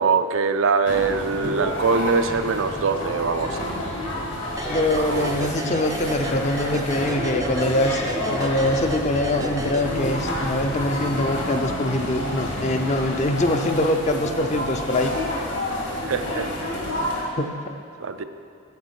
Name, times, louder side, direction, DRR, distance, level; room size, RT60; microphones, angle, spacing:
voice 1, 0.0-3.6 5.0-5.4 16.0-16.7 18.0-18.2, right 5 dB, 80° right, 9 dB, 0.5 m, -23 dB
sound 1, 0.9-17.2, left 1 dB, 65° left, 1.9 m, -29 dB
sound 2, 4.6-10.4, right 2 dB, 15° right, 0.4 m, -33 dB
voice 2, 4.7-15.1 17.4-17.7, left 1 dB, 35° left, 5 dB, 0.5 m, -23 dB
9.4 x 7.6 x 4.8 m, 2.5 s
head